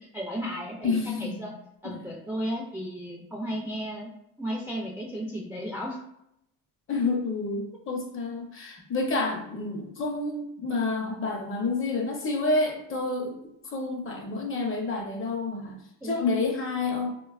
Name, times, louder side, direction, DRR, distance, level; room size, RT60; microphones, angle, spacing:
voice 1, 0.0-1.5 1.8-4.1 4.4-6.0 16.0-16.3, equal, 5° right, -3 dB, 0.3 m, -34 dB
voice 2, 0.8-1.4 1.8-2.0 6.9-13.3 13.7-17.1, left 3 dB, 35° left, 1 dB, 0.6 m, -29 dB
3.2 x 2.2 x 2.3 m, 0.79 s
cardioid pair, 110°, 37 cm